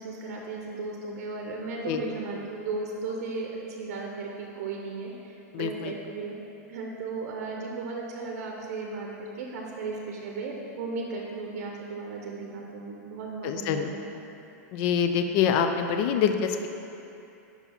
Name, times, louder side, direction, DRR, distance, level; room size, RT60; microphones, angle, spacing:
voice 1, 0.0-6.4 6.7-14.2, right 3 dB, 65° right, -1 dB, 0.7 m, -36 dB
voice 2, 5.5-5.9 13.4-13.9 14.7-16.7, left 7 dB, 45° left, 7 dB, 0.4 m, -25 dB
5.5 x 4.5 x 4.2 m, 2.8 s
supercardioid pair, 145°, 9 cm